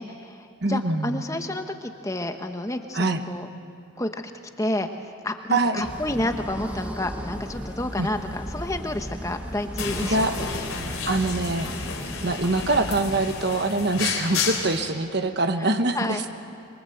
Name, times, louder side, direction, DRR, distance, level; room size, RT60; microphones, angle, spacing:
voice 1, 0.0-3.5 4.0-4.2 4.6-4.9 5.2-10.5 15.6-16.2, left 1 dB, 15° left, 6 dB, 1.0 m, -30 dB
voice 2, 0.6-1.2 2.9-3.2 5.5-5.8 8.0-8.1 10.0-10.4 11.1-11.7 12.2-16.3, right 2 dB, 50° right, 8 dB, 1.2 m, -24 dB
sound 1, 5.8-13.3, equal, 5° right, 1.5 m, -36 dB
sound 2, 9.8-14.9, left 5 dB, 90° left, 3.7 m, -31 dB
26.5 x 23.0 x 7.8 m, 2.4 s
head